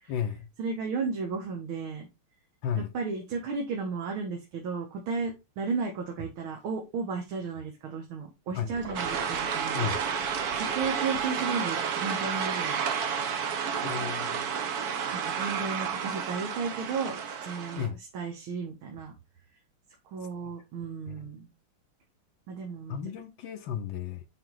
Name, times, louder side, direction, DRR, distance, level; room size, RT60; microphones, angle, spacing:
voice 1, 0.1-0.5 2.6-2.9 8.5-8.7 9.7-10.0 13.8-14.6 17.8-18.0 20.4-20.5 21.1-21.3 22.9-24.2, left 8 dB, 70° left, 1.4 m, -33 dB
voice 2, 0.6-2.1 2.7-9.9 10.6-12.8 15.1-19.1 20.1-21.5 22.5-23.0, right 4 dB, 75° right, 1.9 m, -34 dB
sound 1, 8.6-11.4, right 1 dB, 35° right, 1.7 m, -44 dB
sound 2, 8.9-17.9, right 7 dB, 55° right, 1.2 m, -31 dB
6.4 x 4.3 x 3.9 m
omnidirectional pair, 2.4 m